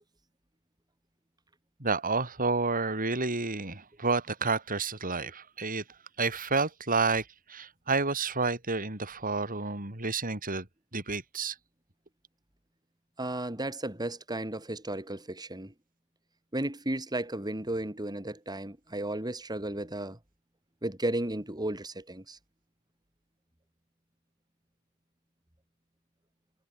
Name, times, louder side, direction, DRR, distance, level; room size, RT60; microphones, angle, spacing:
voice 1, 1.8-5.8 6.2-10.7 10.9-11.5, right 4 dB, 40° right, 5.1 m, -30 dB
voice 2, 13.2-15.7 16.5-20.2 20.8-22.4, right 1 dB, 20° right, 3.0 m, -34 dB
head